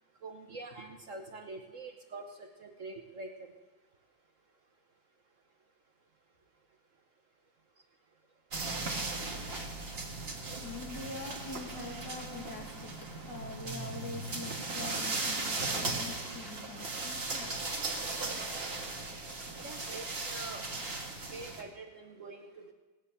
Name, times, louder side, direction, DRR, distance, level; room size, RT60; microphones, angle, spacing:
voice 1, 0.2-3.5 19.6-20.7 21.3-22.7, right 3 dB, 50° right, 4 dB, 1.1 m, -45 dB
sound 1, 8.5-21.6, right 3 dB, 35° right, 1.8 m, -37 dB
voice 2, 10.6-12.9 13.3-17.5, left 3 dB, 65° left, 1 dB, 2.7 m, -44 dB
18.0 x 10.0 x 6.8 m, 1.2 s
omnidirectional pair, 2.0 m